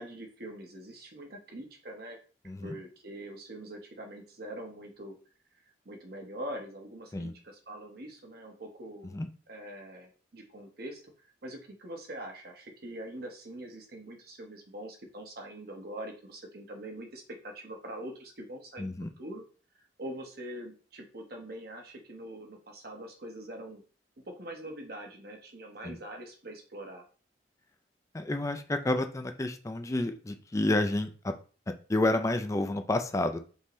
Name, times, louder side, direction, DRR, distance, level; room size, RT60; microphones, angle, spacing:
voice 1, 0.0-2.2 2.6-5.2 5.8-9.2 9.5-11.0 11.4-18.9 19.2-19.4 20.0-23.8 24.3-27.0, right 1 dB, 60° right, 2 dB, 1.1 m, -43 dB
voice 2, 18.8-19.1 25.8-26.0 28.1-31.3 31.9-33.4, left 2 dB, 20° left, 8 dB, 0.4 m, -30 dB
5.3 x 2.8 x 3.1 m, 0.38 s
head